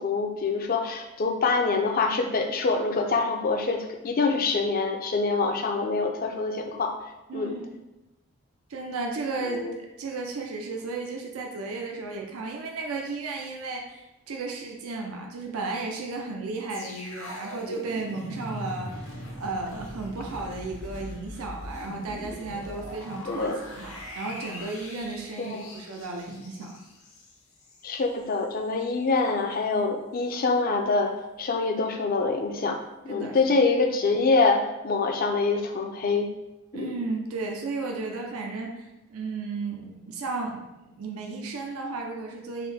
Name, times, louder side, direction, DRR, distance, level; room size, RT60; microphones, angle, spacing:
voice 1, 0.0-6.9 7.3-7.5 9.4-9.7 23.3-23.6 25.4-25.7 27.8-32.8 33.0-36.3 36.7-36.9, left 3 dB, 40° left, 4 dB, 0.4 m, -25 dB
voice 2, 7.3-7.7 8.7-23.5 23.8-26.7 33.1-33.4 36.7-42.7, right 3 dB, 80° right, 1 dB, 0.5 m, -34 dB
sound 1, 16.7-27.9 28.2-28.4, left 1 dB, 80° left, 0.7 m, -41 dB
3.7 x 2.5 x 3.4 m, 0.97 s
head